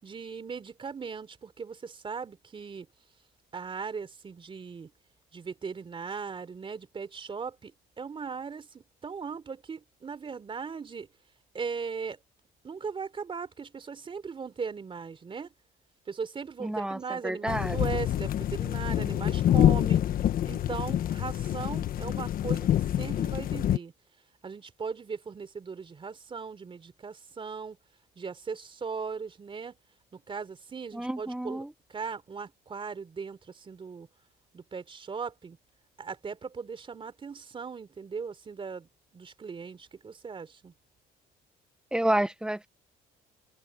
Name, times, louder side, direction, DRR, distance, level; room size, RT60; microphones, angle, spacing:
voice 1, 0.0-2.9 3.5-4.9 5.3-11.1 11.5-12.2 12.6-15.5 16.1-20.0 20.4-23.9 24.4-27.8 28.1-29.8 30.1-34.1 34.5-35.6 36.0-40.7, right 5 dB, 30° right, 3.4 m, -38 dB
voice 2, 16.6-17.8 30.9-31.7 41.9-42.7, right 1 dB, 5° right, 0.9 m, -30 dB
sound 1, 17.5-23.8, left 11 dB, 60° left, 1.2 m, -26 dB
cardioid pair, 110°, 17 cm